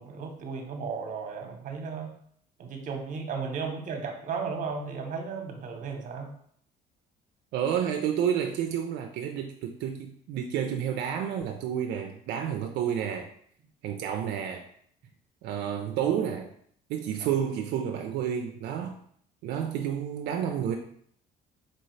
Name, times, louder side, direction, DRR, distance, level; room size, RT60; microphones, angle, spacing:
voice 1, 0.0-2.1 2.6-6.3 17.2-17.3, right 5 dB, 50° right, 4 dB, 0.8 m, -35 dB
voice 2, 7.5-13.3 13.8-14.7 15.4-16.5 16.9-19.0 19.4-20.8, right 9 dB, 80° right, 3 dB, 0.4 m, -30 dB
4.3 x 2.7 x 3.1 m, 0.64 s
cardioid pair, 110°, 17 cm